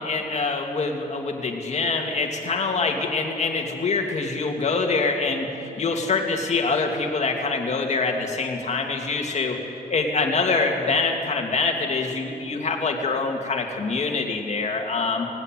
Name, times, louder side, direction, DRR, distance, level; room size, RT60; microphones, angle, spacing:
voice 1, 0.0-9.6 9.9-15.3, left 4 dB, 45° left, 2 dB, 2.6 m, -25 dB
18.5 x 17.5 x 9.2 m, 2.7 s
wide cardioid pair, 125°, 16 cm